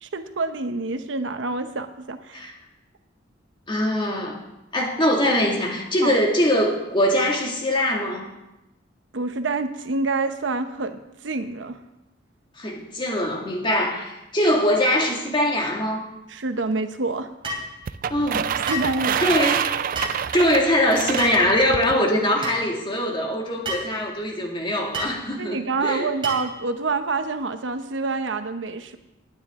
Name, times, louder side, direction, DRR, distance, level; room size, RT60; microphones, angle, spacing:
voice 1, 0.0-2.5 6.0-6.2 9.1-11.8 16.3-17.3 18.3-19.3 25.4-29.0, right 3 dB, 80° right, 9 dB, 0.9 m, -27 dB
voice 2, 3.7-4.4 4.7-8.3 12.6-16.1 18.1-18.4 19.0-19.8 20.3-26.1, left 1 dB, 25° left, 0 dB, 2.2 m, -22 dB
sound 1, 17.4-17.7 18.7-18.9 19.9-20.2 21.2-21.4 22.4-22.6 23.6-23.9 24.9-25.2 26.2-26.5, right 1 dB, 30° right, 2.8 m, -29 dB
sound 2, 17.9-22.0, right 8 dB, 50° right, 0.3 m, -27 dB
19.0 x 9.6 x 3.7 m, 0.94 s
head